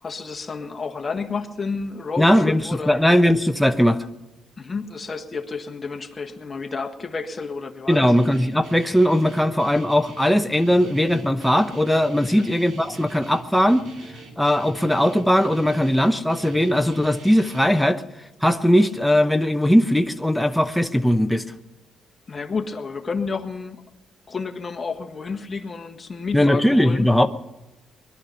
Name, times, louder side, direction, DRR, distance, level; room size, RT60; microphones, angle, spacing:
voice 1, 0.0-3.0 4.6-8.1 12.2-12.5 22.3-23.8 24.3-27.1, left 4 dB, 30° left, 1.6 m, -30 dB
voice 2, 2.2-4.0 7.9-13.8 14.4-18.0 18.4-21.4 26.3-27.3, equal, ahead, 0.8 m, -19 dB
Guitar, 7.9-17.7, right 2 dB, 70° right, 3.4 m, -43 dB
21.0 x 12.0 x 5.7 m
cardioid pair, 90°, 0 cm